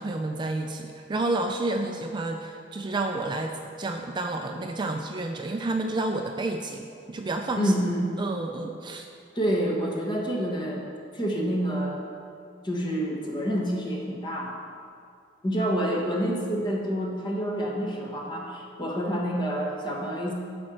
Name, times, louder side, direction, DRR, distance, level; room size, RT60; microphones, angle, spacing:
voice 1, 0.0-7.7 8.2-9.1, right 2 dB, 25° right, 4 dB, 0.4 m, -30 dB
voice 2, 7.5-8.1 9.3-10.9 11.1-12.0 12.6-14.6 15.4-20.3, equal, 25° left, -1 dB, 1.3 m, -28 dB
10.5 x 4.4 x 6.3 m, 2.4 s
head